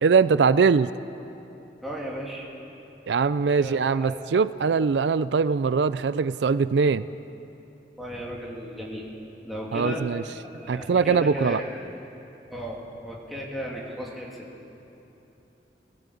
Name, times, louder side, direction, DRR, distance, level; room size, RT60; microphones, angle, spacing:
voice 1, 0.0-0.9 3.1-7.1 9.7-10.2 10.7-11.6, right 5 dB, 80° right, 15 dB, 0.4 m, -22 dB
voice 2, 1.8-2.5 3.6-4.2 8.0-9.1 9.4-10.0 10.5-11.9 12.5-14.5, equal, ahead, -4 dB, 2.9 m, -35 dB
20.0 x 16.0 x 8.4 m, 3.0 s
head